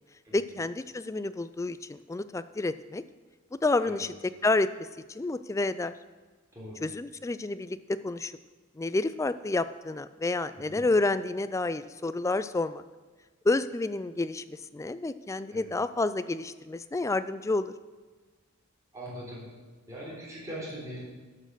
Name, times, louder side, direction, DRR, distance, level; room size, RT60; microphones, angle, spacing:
voice 1, 0.3-3.0 3.6-4.7 5.1-5.9 6.8-8.3 8.8-12.8 13.4-17.7, left 2 dB, 15° left, 13 dB, 0.3 m, -29 dB
voice 2, 6.5-6.8 10.5-10.9 15.5-15.7 18.9-19.5 19.9-21.0, equal, 15° right, -6 dB, 3.4 m, -41 dB
11.5 x 6.4 x 6.5 m, 1.4 s
head